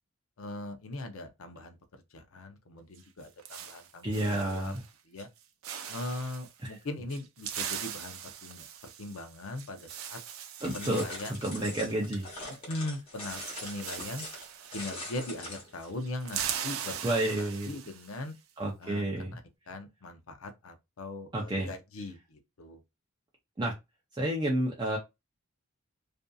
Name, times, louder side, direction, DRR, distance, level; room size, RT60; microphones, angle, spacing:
voice 1, 0.4-1.8 2.1-4.7 5.0-5.3 5.9-10.2 10.7-11.7 12.7-14.3 14.7-18.3 18.8-19.0 19.3-19.4 19.7-22.8, left 2 dB, 70° left, 0.6 m, -40 dB
sound 1, 2.9-4.9 5.2-5.4 5.6-6.5 7.1-12.6 12.8-12.9 13.1-15.5 15.8-18.2, right 9 dB, 75° right, 0.4 m, -41 dB
voice 2, 4.0-4.8 6.7-6.8 10.6-11.1 11.4-12.3 17.0-17.7 18.6-19.3 21.3-21.7 23.6-23.7 24.2-25.0, right 1 dB, 20° right, 0.5 m, -30 dB
sound 2, 10.6-15.9, left 1 dB, 25° left, 0.9 m, -42 dB
2.6 x 2.5 x 2.3 m
head